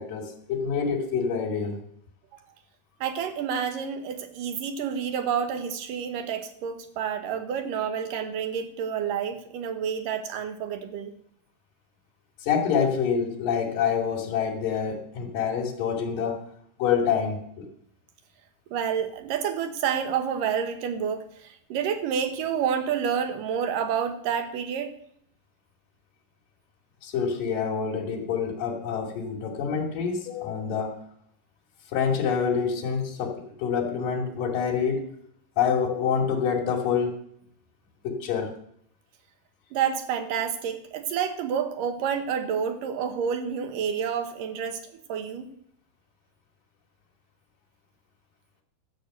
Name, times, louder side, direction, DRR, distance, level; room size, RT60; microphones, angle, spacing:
voice 1, 0.0-1.8 12.4-16.4 16.8-17.4 27.0-31.0 31.9-35.0 35.6-37.2 38.0-38.5, left 6 dB, 75° left, -2 dB, 4.2 m, -26 dB
voice 2, 3.0-11.1 18.7-24.9 39.7-44.8 45.1-45.5, right 7 dB, 75° right, 8 dB, 2.8 m, -29 dB
13.0 x 6.5 x 7.8 m, 0.69 s
omnidirectional pair, 4.0 m